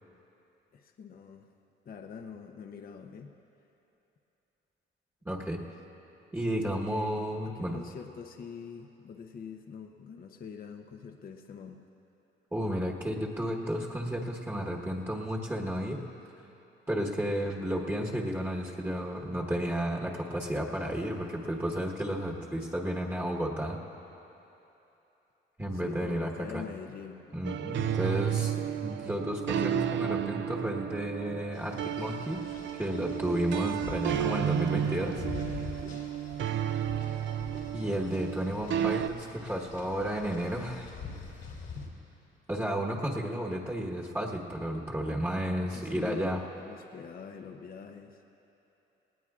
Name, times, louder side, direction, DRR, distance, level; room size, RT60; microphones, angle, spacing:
voice 1, 0.7-1.5 1.8-3.3 6.6-7.2 7.5-11.8 25.7-27.2 35.8-36.0 45.7-48.2, left 6 dB, 45° left, 4 dB, 0.7 m, -44 dB
voice 2, 5.2-5.6 6.3-7.8 12.5-16.0 16.9-23.8 25.6-26.6 27.3-28.6 28.8-32.4 32.8-35.2 37.7-40.9 42.5-46.4, equal, 10° right, -2 dB, 1.2 m, -32 dB
sound 1, 27.4-39.1, right 10 dB, 65° right, 0.5 m, -32 dB
sound 2, 31.5-41.9, left 4 dB, 75° left, 2.3 m, -45 dB
19.5 x 17.5 x 2.4 m, 3.0 s
cardioid pair, 90°, 20 cm